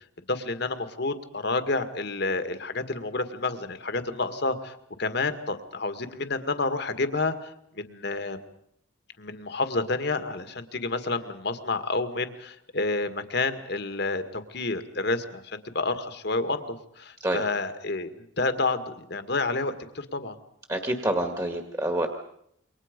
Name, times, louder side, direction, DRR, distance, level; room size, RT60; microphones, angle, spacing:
voice 1, 0.3-8.4 9.2-20.4, left 3 dB, 60° left, 9 dB, 1.9 m, -29 dB
voice 2, 20.7-22.1, right 1 dB, 20° right, 5 dB, 1.8 m, -27 dB
28.0 x 23.5 x 5.3 m, 0.72 s
head